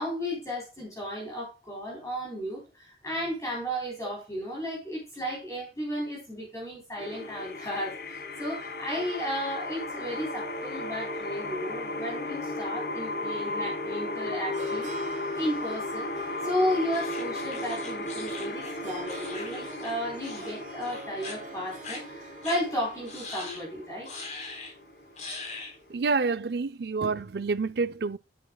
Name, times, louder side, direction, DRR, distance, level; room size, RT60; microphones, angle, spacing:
voice 1, 0.0-16.1 16.4-24.1, equal, 20° left, 3.8 m, -34 dB
sound 1, 7.0-25.9, left 2 dB, 60° left, 1.4 m, -36 dB
Harp, 13.9-26.0, right 3 dB, 45° right, 1.8 m, -47 dB
sound 2, 16.9-19.9 20.2-20.5 20.8-21.4 21.8-22.0 22.4-22.6 23.1-23.6 24.0-24.7 25.2-25.7, left 3 dB, 40° left, 3.9 m, -41 dB
voice 2, 25.9-28.2, right 4 dB, 65° right, 0.5 m, -28 dB
11.0 x 9.4 x 2.3 m
head